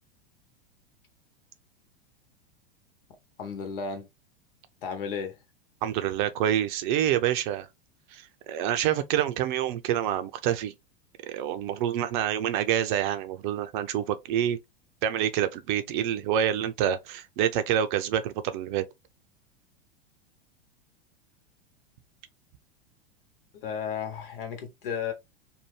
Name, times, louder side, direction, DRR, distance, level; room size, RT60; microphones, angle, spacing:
voice 1, 3.4-4.1 4.8-5.4 23.5-25.1, left 6 dB, 65° left, 1.1 m, -33 dB
voice 2, 5.8-7.7 8.1-10.7 11.3-14.6 15.0-18.8, right 10 dB, 55° right, 0.6 m, -27 dB
2.8 x 2.2 x 3.2 m
hypercardioid pair, 95°, 30 cm